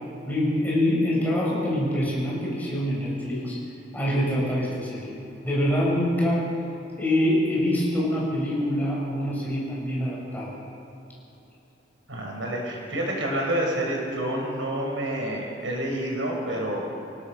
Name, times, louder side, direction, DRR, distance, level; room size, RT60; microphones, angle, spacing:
voice 1, 0.3-3.6 3.9-5.2 5.4-6.5 7.0-10.6, left 1 dB, 10° left, -6 dB, 7.9 m, -25 dB
voice 2, 12.1-16.8, right 1 dB, 85° right, -1 dB, 6.2 m, -28 dB
29.5 x 17.5 x 7.0 m, 2.8 s
head